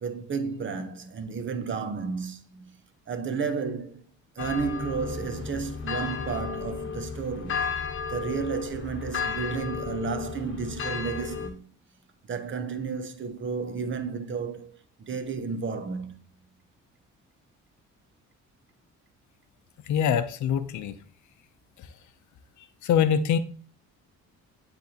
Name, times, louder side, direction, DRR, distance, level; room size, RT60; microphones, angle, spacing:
voice 1, 0.0-2.7 3.1-4.0 4.4-7.7 8.1-11.6 12.2-14.7 15.0-16.1, right 5 dB, 40° right, 0.8 m, -32 dB
sound 1, 4.4-11.5, left 5 dB, 40° left, 1.2 m, -33 dB
voice 2, 19.9-20.9 22.8-23.4, left 8 dB, 75° left, 0.6 m, -24 dB
10.0 x 3.4 x 2.9 m
cardioid pair, 90°, 30 cm